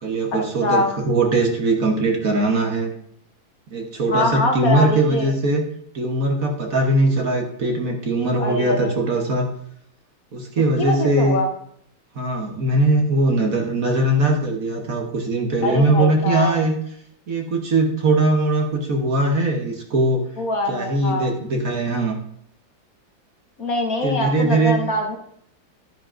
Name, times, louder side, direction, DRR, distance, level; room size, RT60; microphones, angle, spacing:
voice 1, 0.0-2.9 3.7-5.6 5.9-9.5 10.3-11.4 12.1-16.7 17.3-20.2 20.7-22.2 24.0-24.8, right 2 dB, 50° right, 2 dB, 1.4 m, -20 dB
voice 2, 4.1-5.3 8.4-9.0 10.8-11.5 15.6-16.6 20.4-21.3 23.6-25.2, left 2 dB, 55° left, 3 dB, 1.4 m, -23 dB
11.5 x 9.6 x 2.5 m, 0.69 s
omnidirectional pair, 2.1 m